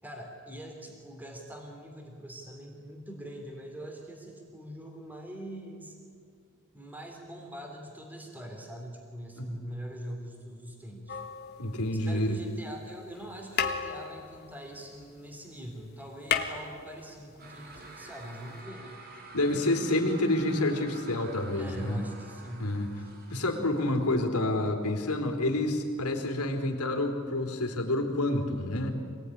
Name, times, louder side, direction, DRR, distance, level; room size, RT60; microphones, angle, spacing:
voice 1, 0.0-5.9 6.7-11.2 11.9-19.0 21.5-22.6 23.0-23.1, right 1 dB, 10° right, 1 dB, 3.3 m, -43 dB
sound 1, 11.1-12.2 13.1-13.3 13.5-15.4 15.7-15.8 16.0-17.4 18.6-18.7, left 6 dB, 45° left, 1.7 m, -34 dB
voice 2, 11.6-12.4 19.3-22.0 22.6-22.9 23.3-28.9, left 1 dB, 90° left, 3 dB, 3.8 m, -28 dB
sound 2, 17.4-24.1, right 3 dB, 45° right, 3.3 m, -49 dB
26.5 x 19.0 x 10.0 m, 2.2 s
head